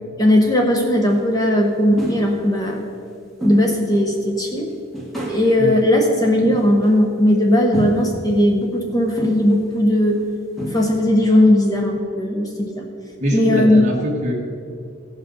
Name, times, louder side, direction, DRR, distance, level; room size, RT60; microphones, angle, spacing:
voice 1, 0.2-2.8 3.4-4.7 5.3-10.2 10.7-12.8 13.3-13.9, left 1 dB, 20° left, 1 dB, 0.7 m, -17 dB
sound 1, 1.1-1.2 2.0-2.4 3.4-3.8 4.2-4.3 4.9-5.5 6.4-7.0 7.7-8.2 9.2-9.6 10.2-10.3 10.6-11.0, equal, ahead, 1.6 m, -28 dB
voice 2, 13.2-14.3, equal, 35° right, -2 dB, 1.6 m, -22 dB
15.5 x 5.7 x 5.3 m, 2.4 s
head